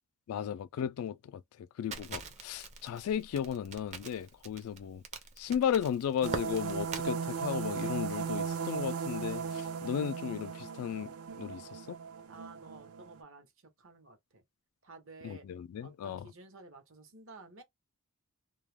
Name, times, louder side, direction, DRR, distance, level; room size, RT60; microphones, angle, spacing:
voice 1, 0.3-1.4 1.8-5.0 5.4-12.0 15.2-16.3, left 8 dB, 80° left, 0.3 m, -35 dB
Crackle, 1.9-7.1, right 4 dB, 30° right, 0.5 m, -43 dB
sound 1, 6.2-13.2, right 6 dB, 85° right, 0.5 m, -37 dB
voice 2, 12.3-13.5 13.8-14.4 14.8-15.5 15.8-17.6, right 3 dB, 60° right, 0.9 m, -52 dB
2.3 x 2.1 x 3.1 m
head